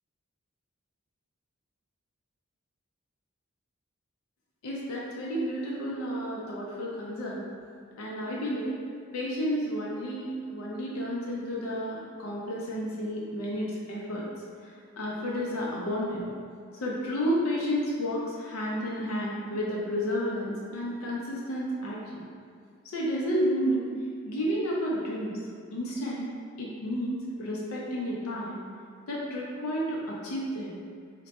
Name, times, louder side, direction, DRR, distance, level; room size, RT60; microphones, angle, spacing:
voice 1, 4.6-7.4 8.0-8.8 9.1-14.3 14.6-16.3 16.7-22.2 22.9-23.9 24.3-25.3 25.7-26.3 26.6-28.6 29.1-30.7, equal, 80° left, -5 dB, 0.5 m, -31 dB
3.0 x 2.1 x 4.1 m, 2.2 s
head